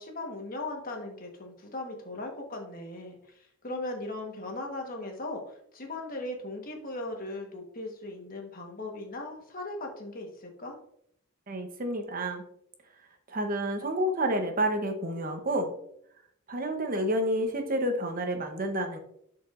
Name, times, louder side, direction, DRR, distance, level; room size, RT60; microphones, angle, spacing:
voice 1, 0.0-10.8, left 2 dB, 40° left, 2 dB, 1.3 m, -38 dB
voice 2, 11.5-12.4 13.3-15.7 16.5-19.0, right 1 dB, 40° right, 5 dB, 0.9 m, -29 dB
11.0 x 4.7 x 2.5 m, 0.70 s
head